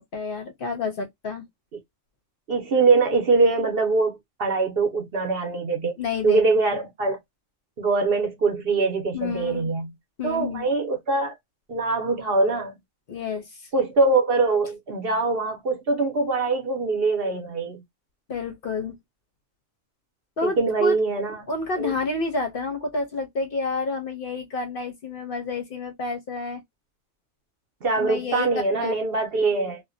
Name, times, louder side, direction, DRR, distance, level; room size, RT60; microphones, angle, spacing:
voice 1, 0.0-1.4 6.0-6.4 9.1-9.7 10.2-10.7 13.1-13.7 18.3-19.0 20.4-21.0 21.5-26.6 28.0-28.5 28.7-28.9, left 4 dB, 55° left, 0.7 m, -29 dB
voice 2, 2.5-5.9 6.2-7.2 7.8-9.9 10.2-11.3 11.7-12.7 13.7-17.8 20.4-21.4 21.8-21.9 27.8-29.8, right 3 dB, 55° right, 0.8 m, -23 dB
2.5 x 2.1 x 2.4 m
omnidirectional pair, 1.4 m